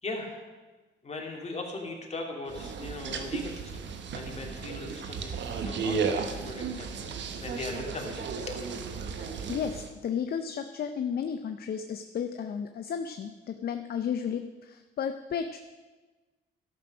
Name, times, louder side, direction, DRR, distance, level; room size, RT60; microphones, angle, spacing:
voice 1, 0.0-0.4 1.0-8.7, left 3 dB, 35° left, 0 dB, 2.4 m, -39 dB
sound 1, 2.5-9.9, right 5 dB, 65° right, 1.1 m, -34 dB
voice 2, 9.2-15.6, left 7 dB, 50° left, 8 dB, 0.6 m, -33 dB
12.5 x 6.1 x 6.2 m, 1.3 s
cardioid pair, 90°, 20 cm